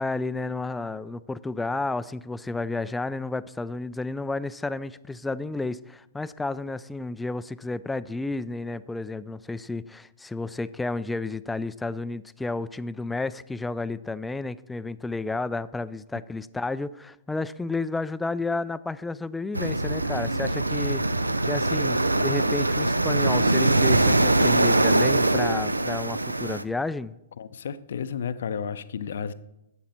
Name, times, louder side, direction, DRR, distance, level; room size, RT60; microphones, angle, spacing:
voice 1, 0.0-21.0 21.5-27.2, left 3 dB, 5° left, 0.3 m, -31 dB
sound 1, 19.5-26.6, right 2 dB, 90° right, 0.4 m, -22 dB
voice 2, 27.4-29.3, left 7 dB, 60° left, 0.6 m, -32 dB
12.0 x 8.1 x 4.3 m
figure-of-eight pair, 110°, 0 cm